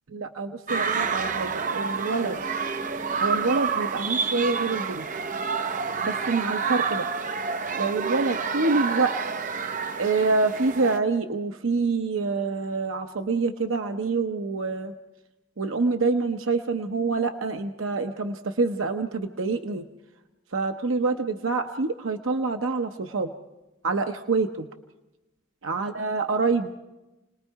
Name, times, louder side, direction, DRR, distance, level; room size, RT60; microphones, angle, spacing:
voice 1, 0.1-2.4 3.2-5.1 6.0-7.1 7.8-9.1 10.0-14.9 15.6-19.9 20.5-23.3 23.8-24.7 25.6-26.7, right 3 dB, 85° right, 6 dB, 0.8 m, -26 dB
sound 1, 0.7-11.0, right 5 dB, 40° right, 0.7 m, -29 dB
Bass guitar, 2.3-6.2, left 3 dB, 25° left, 4.7 m, -48 dB
29.0 x 19.5 x 4.6 m, 1.0 s
head